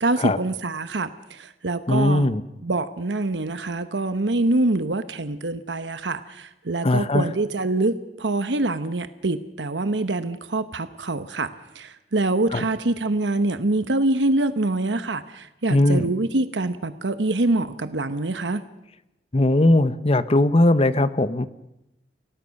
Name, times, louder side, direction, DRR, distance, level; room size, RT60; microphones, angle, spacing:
voice 1, 0.0-2.3 2.6-18.6, right 2 dB, 90° right, 11 dB, 1.1 m, -25 dB
voice 2, 1.9-2.4 6.8-7.2 12.5-12.6 15.7-16.1 19.3-21.5, left 1 dB, 35° left, 14 dB, 0.8 m, -19 dB
29.5 x 18.0 x 6.5 m, 0.91 s
head